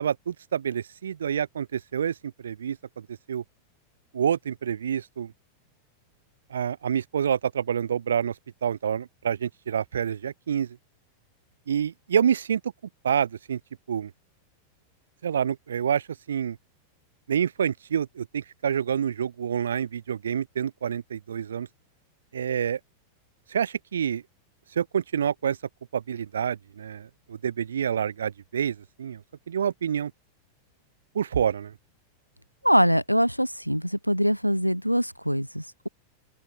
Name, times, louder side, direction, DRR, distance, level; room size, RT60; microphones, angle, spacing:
voice 1, 0.0-3.4 4.1-5.3 6.5-8.3 8.6-10.8 11.7-12.7 13.0-13.6 13.9-14.1 15.2-16.6 17.3-21.7 22.3-22.8 23.5-24.2 24.8-25.6 25.9-29.2 29.5-30.1 31.1-31.7, right 8 dB, 65° right, 0.9 m, -27 dB
voice 2, 32.6-35.9, equal, 90° right, 0.7 m, -23 dB
open air
figure-of-eight pair, 90°, 0 cm